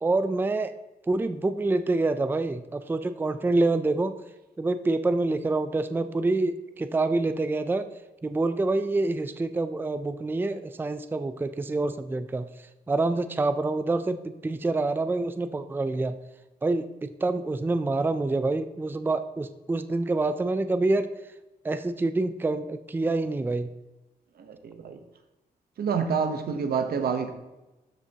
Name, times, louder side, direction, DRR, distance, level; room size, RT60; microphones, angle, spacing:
voice 1, 0.0-0.7 1.1-4.1 4.6-7.9 8.2-12.5 12.9-16.2 16.6-21.1 21.6-23.7, right 2 dB, 15° right, 10 dB, 0.4 m, -26 dB
voice 2, 24.4-25.0 25.8-27.3, right 6 dB, 80° right, 7 dB, 0.9 m, -28 dB
13.0 x 5.3 x 2.9 m, 1.1 s
cardioid pair, 105°, 16 cm